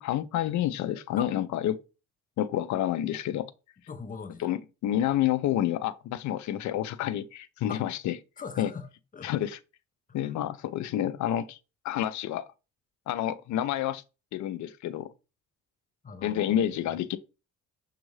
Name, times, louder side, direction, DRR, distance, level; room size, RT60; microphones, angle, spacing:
voice 1, 0.0-1.8 2.4-3.5 4.4-8.2 8.6-8.7 9.2-9.6 10.1-11.6 11.8-12.5 13.1-14.0 14.3-15.1 16.2-17.2, left 11 dB, 65° left, 0.4 m, -29 dB
voice 2, 3.9-4.5 7.7-7.8 8.4-9.3 10.1-10.4 16.0-16.8, left 5 dB, 25° left, 0.7 m, -41 dB
6.2 x 2.4 x 3.1 m
cardioid pair, 85°, 31 cm